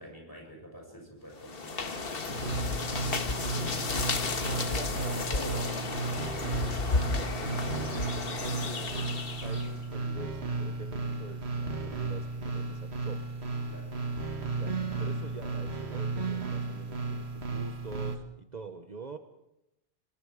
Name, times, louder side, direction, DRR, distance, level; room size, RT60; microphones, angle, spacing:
voice 1, 0.0-3.4 4.3-6.1 6.4-7.4 8.2-8.5 13.7-14.0, equal, 20° left, 1 dB, 6.8 m, -47 dB
sound 1, 1.4-9.8, left 3 dB, 60° left, 1.6 m, -33 dB
sound 2, 2.3-18.2, right 3 dB, 80° right, 1.8 m, -34 dB
voice 2, 4.4-5.5 6.9-9.1 9.4-13.3 14.5-19.2, right 4 dB, 45° right, 7 dB, 1.0 m, -45 dB
26.0 x 21.0 x 4.9 m, 0.85 s
omnidirectional pair, 1.1 m